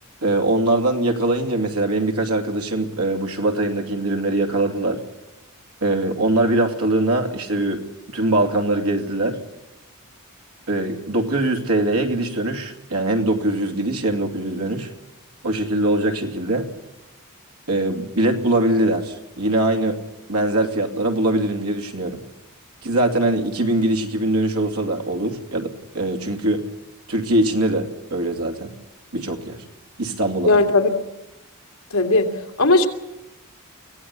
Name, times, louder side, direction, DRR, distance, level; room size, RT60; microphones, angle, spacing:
voice 1, 0.2-5.0 5.8-7.8 8.1-9.4 10.7-14.9 15.4-16.7 17.7-20.0 20.3-22.2 22.8-26.6 27.1-28.7 29.1-29.6 30.0-30.6, right 1 dB, 90° right, 4 dB, 2.7 m, -22 dB
voice 2, 30.5-30.9 31.9-32.3 32.6-32.9, left 2 dB, 75° left, 3 dB, 2.6 m, -16 dB
24.0 x 17.0 x 8.4 m, 0.99 s
head